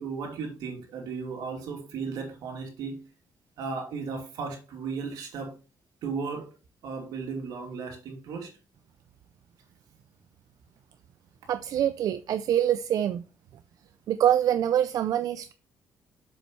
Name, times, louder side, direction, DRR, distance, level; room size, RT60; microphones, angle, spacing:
voice 1, 0.0-3.0 3.6-5.5 6.0-6.5 6.8-8.5, right 5 dB, 90° right, 2.8 m, -35 dB
voice 2, 11.5-13.2 14.1-15.5, right 10 dB, 70° right, 0.4 m, -25 dB
7.6 x 7.0 x 3.2 m
cardioid pair, 120°, 6 cm